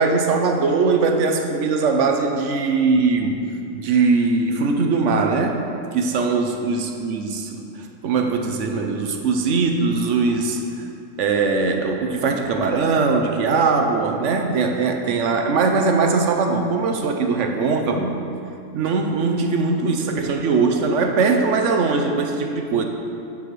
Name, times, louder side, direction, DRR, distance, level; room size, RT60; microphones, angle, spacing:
voice 1, 0.0-3.3 3.7-5.6 5.9-7.6 8.0-10.6 11.2-18.2 18.7-22.8, right 4 dB, 65° right, 4 dB, 1.0 m, -20 dB
11.5 x 7.3 x 3.3 m, 2.5 s
omnidirectional pair, 1.5 m